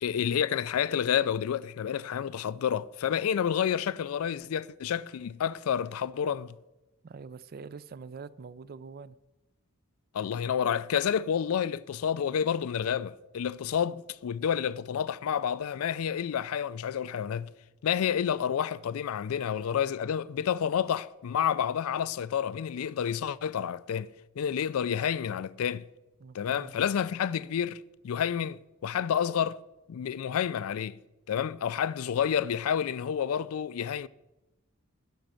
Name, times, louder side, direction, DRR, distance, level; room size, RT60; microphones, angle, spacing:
voice 1, 0.0-6.6 10.1-17.5 17.8-25.9 26.3-29.6 29.9-31.0 31.3-34.1, left 8 dB, 75° left, 0.4 m, -29 dB
voice 2, 7.0-9.2 26.2-26.8, right 5 dB, 45° right, 0.4 m, -44 dB
12.0 x 5.4 x 7.5 m
head